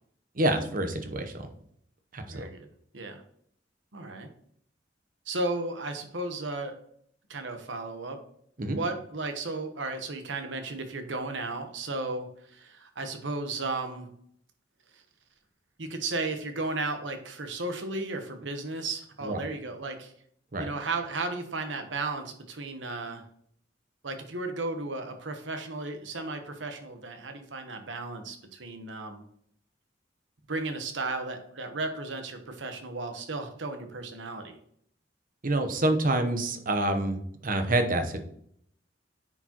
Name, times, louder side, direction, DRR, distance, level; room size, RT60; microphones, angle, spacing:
voice 1, 0.3-1.5 2.1-2.5 8.6-8.8 19.2-19.4 20.5-20.7 35.4-38.2, right 1 dB, 50° right, 7 dB, 0.9 m, -27 dB
voice 2, 2.3-2.7 2.9-3.2 3.9-4.3 5.3-6.7 7.3-8.2 8.7-14.1 15.8-20.1 20.6-23.2 24.0-29.2 30.5-34.6, right 3 dB, 85° right, 7 dB, 1.1 m, -34 dB
9.7 x 4.7 x 3.0 m, 0.67 s
head